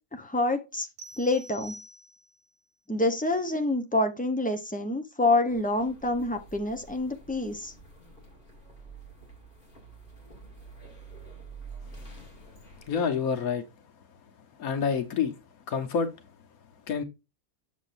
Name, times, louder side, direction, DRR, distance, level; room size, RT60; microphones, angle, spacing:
voice 1, 0.1-0.9 1.2-1.8 2.9-7.7, left 2 dB, 15° left, 0.3 m, -27 dB
sound 1, 1.0-2.5, right 1 dB, 80° right, 1.4 m, -47 dB
sound 2, 5.5-12.9, right 3 dB, 35° left, 2.8 m, -48 dB
voice 2, 12.9-13.6 14.6-15.3 15.7-16.1 16.9-17.0, left 6 dB, 75° left, 1.4 m, -27 dB
7.4 x 7.1 x 2.5 m
omnidirectional pair, 1.5 m